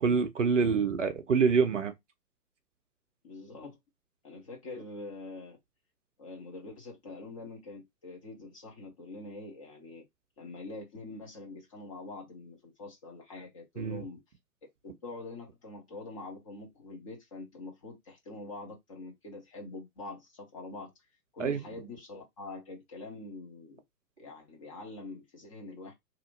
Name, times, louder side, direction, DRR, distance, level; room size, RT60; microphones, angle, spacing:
voice 1, 0.0-1.9 13.8-14.0 21.4-21.6, right 5 dB, 50° right, 0.6 m, -26 dB
voice 2, 3.2-3.8 4.2-5.6 6.2-10.0 10.4-14.2 14.8-20.9 21.3-23.8 24.2-25.9, left 3 dB, 20° left, 0.8 m, -44 dB
2.9 x 2.5 x 3.8 m
figure-of-eight pair, 120°, 49 cm